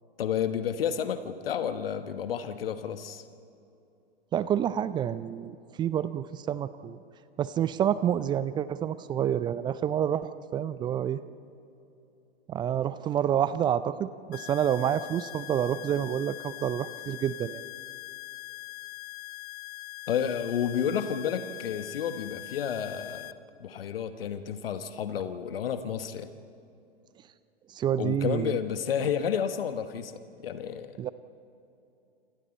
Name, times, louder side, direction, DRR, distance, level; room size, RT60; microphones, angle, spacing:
voice 1, 0.2-3.2 20.1-23.3 23.6-26.3 28.0-30.1 30.4-30.9, left 8 dB, 60° left, 10 dB, 1.3 m, -31 dB
voice 2, 4.3-7.0 7.4-11.2 12.5-17.6 27.7-28.6 31.0-31.1, right 10 dB, 15° right, 16 dB, 0.4 m, -28 dB
sound 1, 14.3-23.3, left 21 dB, 30° left, 0.7 m, -42 dB
28.5 x 27.5 x 4.3 m, 2.7 s
figure-of-eight pair, 105°, 32 cm